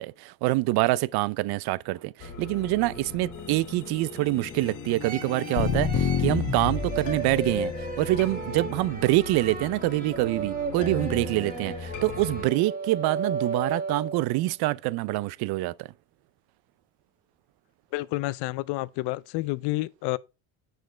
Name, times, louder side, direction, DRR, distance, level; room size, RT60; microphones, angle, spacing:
voice 1, 0.0-7.7 8.0-15.9, right 18 dB, 65° right, 0.5 m, -26 dB
sound 1, 2.2-12.5, left 6 dB, 45° left, 1.4 m, -33 dB
sound 2, 5.0-14.4, right 4 dB, 20° right, 1.3 m, -35 dB
voice 2, 17.9-20.2, left 20 dB, 75° left, 0.5 m, -29 dB
6.3 x 5.1 x 4.4 m
cardioid pair, 125°, 41 cm